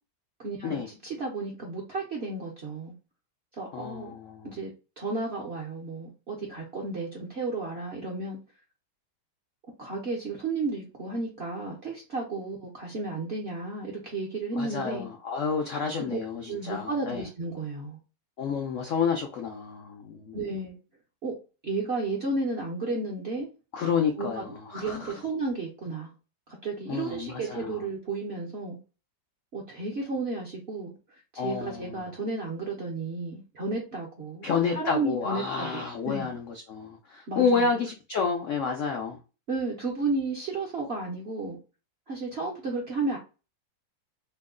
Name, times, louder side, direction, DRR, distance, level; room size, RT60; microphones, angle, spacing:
voice 1, 0.4-2.9 3.6-4.1 4.4-8.4 9.8-15.1 16.0-16.2 16.5-18.0 20.3-20.8 21.2-21.4 21.6-23.5 24.2-26.1 26.6-28.8 29.5-30.9 31.3-36.4 37.3-37.8 39.5-41.6 42.1-43.2, right 3 dB, 60° right, 0.7 m, -33 dB
voice 2, 3.7-4.6 14.5-17.3 18.4-20.4 23.7-25.1 26.9-27.8 31.4-32.0 34.4-39.2, left 5 dB, 80° left, 0.6 m, -30 dB
3.1 x 2.1 x 3.6 m
omnidirectional pair, 1.9 m